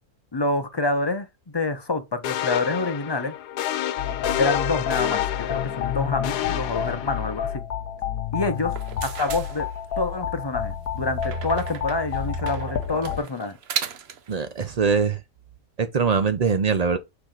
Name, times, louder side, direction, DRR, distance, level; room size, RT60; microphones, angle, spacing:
voice 1, 0.3-1.3 1.5-3.3 4.4-7.6 8.3-8.7 9.0-9.7 10.0-13.6, left 2 dB, 25° left, 0.5 m, -27 dB
sound 1, 2.2-7.6, left 12 dB, 85° left, 1.2 m, -29 dB
sound 2, 4.0-13.2, left 8 dB, 65° left, 1.2 m, -30 dB
sound 3, 8.6-10.2 11.2-14.3, right 8 dB, 55° right, 0.8 m, -35 dB
voice 2, 14.3-15.2 15.8-17.0, right 5 dB, 75° right, 0.3 m, -22 dB
6.9 x 4.6 x 3.8 m
omnidirectional pair, 1.7 m